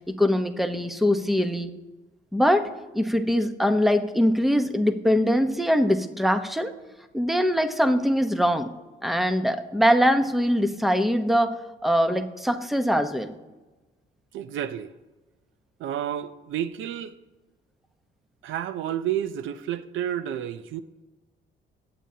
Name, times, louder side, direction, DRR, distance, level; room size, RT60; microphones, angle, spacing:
voice 1, 0.1-1.7 2.3-2.7 2.9-6.7 7.1-8.7 9.0-11.5 11.8-13.3, equal, ahead, 0.9 m, -22 dB
voice 2, 14.3-14.9 15.8-17.2 18.4-20.8, right 10 dB, 80° right, 0.6 m, -30 dB
20.0 x 8.8 x 2.8 m
cardioid pair, 90°, 20 cm